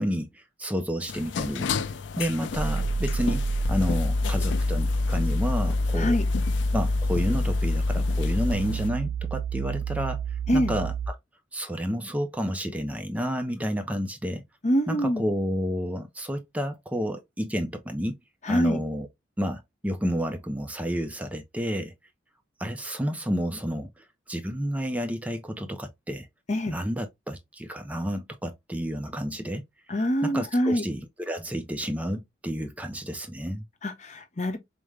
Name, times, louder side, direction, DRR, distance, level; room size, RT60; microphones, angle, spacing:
voice 1, 0.0-6.2 6.7-11.2 11.5-14.4 14.9-18.2 18.5-19.1 19.4-21.9 22.6-26.3 26.7-29.6 30.2-33.6, equal, 5° right, 0.4 m, -30 dB
sound 1, 1.1-8.9, left 6 dB, 65° left, 0.4 m, -35 dB
sound 2, 2.5-11.1, equal, 85° left, 0.8 m, -26 dB
voice 2, 14.6-15.2 18.4-18.8 26.5-26.7 29.9-30.8 33.8-34.6, equal, 35° left, 0.7 m, -25 dB
5.0 x 2.1 x 3.2 m
head